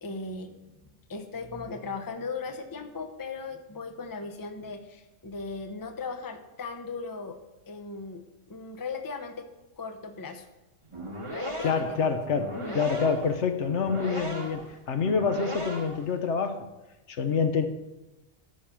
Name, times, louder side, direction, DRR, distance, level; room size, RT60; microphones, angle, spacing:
voice 1, 0.0-0.5 1.1-7.4 7.7-8.2 8.5-9.5 9.8-10.5 11.3-12.2 12.5-12.8, left 4 dB, 20° left, 6 dB, 0.8 m, -37 dB
sound 1, 10.8-16.1, right 1 dB, 25° right, 1.5 m, -37 dB
voice 2, 11.6-16.7 17.1-17.7, left 5 dB, 60° left, 7 dB, 1.2 m, -27 dB
13.0 x 5.4 x 5.8 m, 1.0 s
omnidirectional pair, 1.4 m